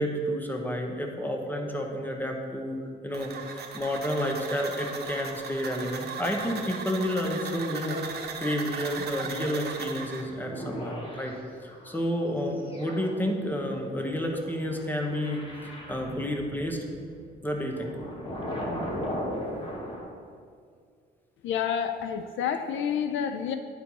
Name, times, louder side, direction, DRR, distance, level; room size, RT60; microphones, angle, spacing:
voice 1, 0.0-11.3 11.6-16.9 17.4-17.9 19.4-19.6, equal, 10° left, 2 dB, 1.1 m, -30 dB
sound 1, 3.1-10.2, right 5 dB, 55° right, 1.0 m, -37 dB
sound 2, 10.2-11.9 12.6-20.0, equal, 25° left, 1.4 m, -37 dB
voice 2, 21.4-23.6, left 8 dB, 75° left, 8 dB, 0.5 m, -29 dB
10.5 x 4.5 x 4.2 m, 2.2 s
cardioid pair, 90°, 20 cm